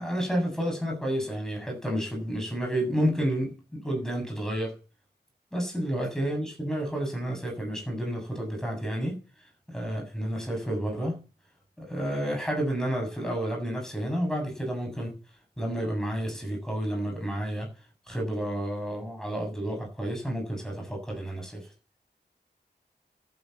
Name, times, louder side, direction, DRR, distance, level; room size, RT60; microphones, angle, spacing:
voice 1, 0.0-4.8 5.5-9.2 9.7-11.2 11.8-15.2 15.6-17.7 18.1-21.7, equal, 5° left, 7.4 m, -30 dB
14.0 x 8.7 x 7.3 m
cardioid pair, 45°, 19 cm